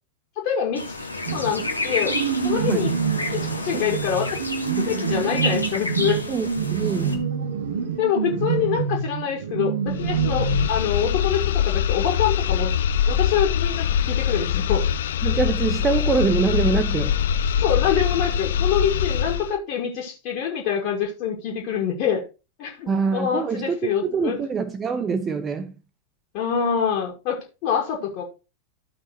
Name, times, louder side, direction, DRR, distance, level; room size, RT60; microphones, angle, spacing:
voice 1, 0.4-1.0 1.3-2.2 2.4-2.9 3.3-4.4 4.8-6.2 8.0-12.8 13.1-14.9 17.6-22.2 22.6-24.4 26.3-28.2, left 8 dB, 45° left, 2.2 m, -25 dB
sound 1, 0.7-7.2, left 2 dB, 85° left, 1.5 m, -30 dB
sound 2, 1.3-10.7, right 6 dB, 65° right, 1.8 m, -26 dB
voice 2, 6.3-7.3 15.2-17.2 22.9-25.7, right 5 dB, 20° right, 0.7 m, -24 dB
sound 3, 9.9-19.6, left 8 dB, 60° left, 0.5 m, -23 dB
14.0 x 5.6 x 3.1 m
figure-of-eight pair, 90°, 0 cm